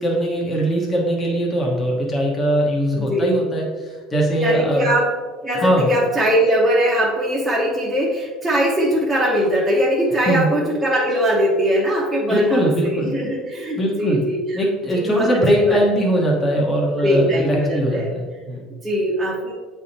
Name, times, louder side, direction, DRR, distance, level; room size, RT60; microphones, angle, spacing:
voice 1, 0.0-4.9 5.6-5.9 10.3-10.5 12.3-13.1 13.8-14.2 14.5-18.7, right 1 dB, 15° left, -2 dB, 1.1 m, -21 dB
voice 2, 2.9-3.4 4.4-5.1 5.4-14.6 14.9-15.8 17.0-18.1 18.8-19.5, equal, 10° right, -6 dB, 1.0 m, -20 dB
8.3 x 3.6 x 4.2 m, 1.4 s
cardioid pair, 160°, 0 cm